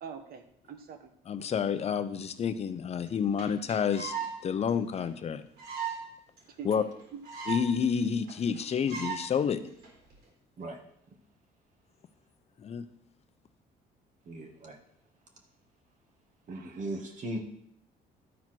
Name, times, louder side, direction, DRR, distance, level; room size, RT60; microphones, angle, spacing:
voice 1, 0.0-1.1 6.6-7.2 16.5-16.8, right 6 dB, 60° right, 6 dB, 1.4 m, -45 dB
voice 2, 1.3-4.1 4.4-5.4 6.6-6.8 7.5-9.6 12.6-12.9, left 7 dB, 40° left, 10 dB, 0.7 m, -29 dB
sound 1, 3.1-3.2 3.4-3.5 3.7-4.3 4.7-4.8 5.0-5.1 5.6-6.0 6.4-6.5 6.7-6.8 7.0-7.7 8.0-8.1 8.3-8.6 8.9-9.2 9.8-10.1, right 7 dB, 80° right, 4.0 m, -36 dB
voice 3, 14.3-14.8 16.5-17.4, right 1 dB, 45° right, 3 dB, 1.9 m, -38 dB
12.0 x 4.5 x 6.1 m, 0.70 s
cardioid pair, 110°, 17 cm